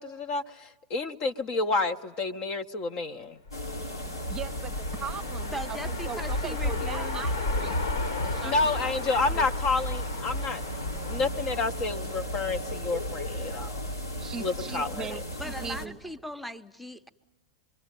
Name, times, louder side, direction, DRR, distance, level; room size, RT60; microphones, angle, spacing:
voice 1, 0.0-3.4 8.4-10.6 11.0-13.8 14.4-15.2, left 3 dB, 40° left, 11 dB, 0.9 m, -29 dB
sound 1, 3.5-15.9, equal, 85° left, 2.3 m, -36 dB
sound 2, 3.5-12.7, left 2 dB, 70° left, 1.8 m, -34 dB
voice 2, 4.3-7.8 8.2-9.1 9.3-9.4 14.2-16.0, right 6 dB, 25° right, 10 dB, 0.8 m, -40 dB
voice 3, 5.5-7.2 15.4-17.1, equal, ahead, 12 dB, 0.9 m, -39 dB
26.0 x 23.5 x 9.2 m, 1.1 s
figure-of-eight pair, 90°, 2 cm